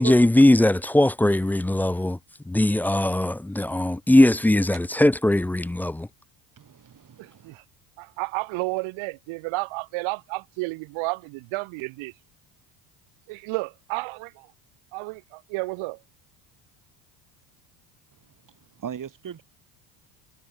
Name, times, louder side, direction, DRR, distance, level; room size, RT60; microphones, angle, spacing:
voice 1, 0.0-2.2 2.5-6.1, left 1 dB, 5° left, 0.4 m, -20 dB
voice 2, 6.6-7.6 18.7-19.4, right 8 dB, 40° right, 6.8 m, -39 dB
voice 3, 7.2-7.6 8.0-12.1 13.3-14.5 14.9-16.0, right 25 dB, 70° right, 3.3 m, -31 dB
supercardioid pair, 85°, 50 cm